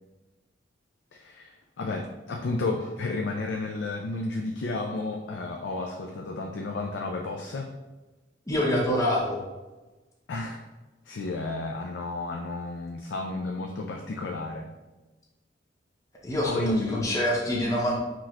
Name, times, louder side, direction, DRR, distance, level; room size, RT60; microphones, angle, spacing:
voice 1, 1.1-7.7 10.3-10.6 11.1-14.7 16.4-17.1, left 2 dB, 85° left, 1 dB, 0.4 m, -32 dB
voice 2, 8.5-9.4 16.2-16.6 16.9-18.0, left 1 dB, 20° left, -3 dB, 0.6 m, -25 dB
5.8 x 3.0 x 2.5 m, 1.1 s
head